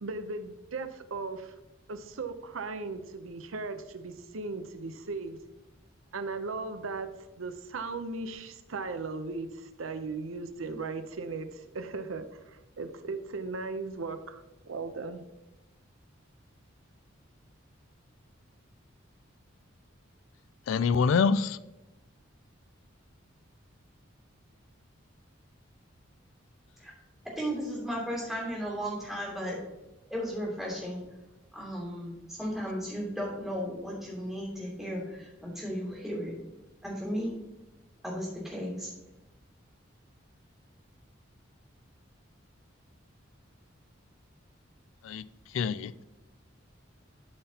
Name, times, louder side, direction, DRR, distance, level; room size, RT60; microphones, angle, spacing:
voice 1, 0.0-1.5 1.9-5.4 6.1-7.1 7.4-15.2, right 3 dB, 90° right, 0.7 m, -37 dB
voice 2, 20.7-21.6 45.0-45.2 45.5-46.0, left 5 dB, 75° left, 0.3 m, -25 dB
voice 3, 27.3-29.6 30.1-31.0 31.5-36.4 36.8-37.3 38.0-38.9, equal, ahead, 2.9 m, -35 dB
12.0 x 5.9 x 2.8 m
head